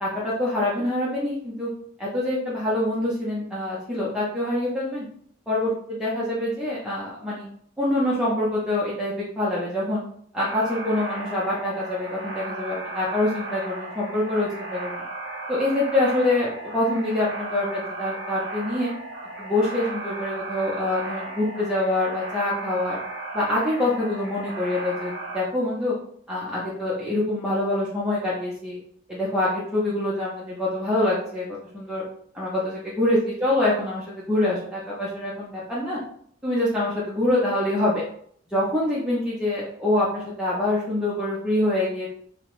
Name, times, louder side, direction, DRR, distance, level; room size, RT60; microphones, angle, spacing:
voice 1, 0.0-1.7 2.0-5.1 5.5-7.5 7.8-10.0 10.3-15.0 15.5-18.9 19.4-23.0 23.3-25.9 26.3-28.8 29.1-31.5 31.7-32.0 32.3-36.0 36.4-38.0 38.5-42.1, left 1 dB, 5° right, -8 dB, 0.6 m, -25 dB
sound 1, 10.4-25.4, right 2 dB, 80° right, 0.8 m, -35 dB
2.8 x 2.1 x 3.0 m, 0.62 s
head